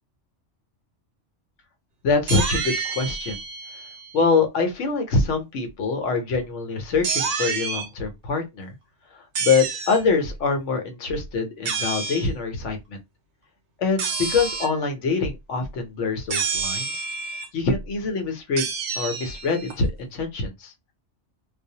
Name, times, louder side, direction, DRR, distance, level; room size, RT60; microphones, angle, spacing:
voice 1, 2.0-3.4 4.1-8.7 9.1-13.0 13.8-17.1 17.5-18.7 19.0-20.7, left 4 dB, 80° left, 1.0 m, -24 dB
sound 1, 2.3-4.2 7.0-7.9 9.3-10.0 11.6-12.3 14.0-14.8 16.3-17.5 18.6-19.8, right 5 dB, 75° right, 0.9 m, -28 dB
2.4 x 2.0 x 2.7 m
omnidirectional pair, 1.2 m